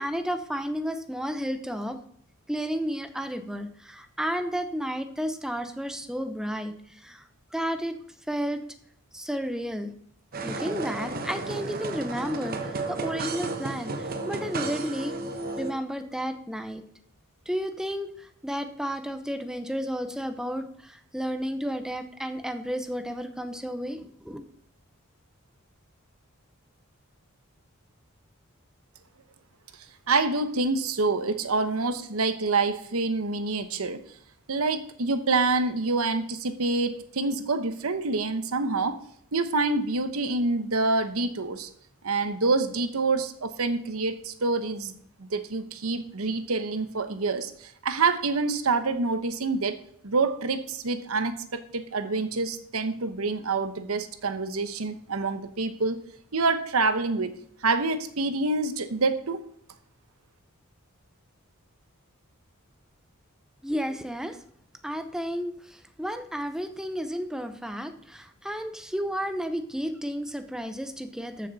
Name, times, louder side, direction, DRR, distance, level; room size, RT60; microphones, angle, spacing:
voice 1, 0.0-2.0 2.5-7.3 7.5-8.0 8.3-8.6 9.1-9.9 10.4-15.2 15.6-16.8 17.5-24.4 63.6-64.4 64.8-71.5, equal, 5° right, 8 dB, 0.8 m, -32 dB
sound 1, 10.3-15.7, right 3 dB, 45° right, 1.1 m, -33 dB
voice 2, 30.1-34.0 34.5-39.0 39.3-41.7 42.0-44.9 45.2-49.8 50.0-56.0 56.3-57.4 57.6-59.4, right 3 dB, 85° right, 10 dB, 1.0 m, -27 dB
13.5 x 6.5 x 4.1 m, 0.65 s
head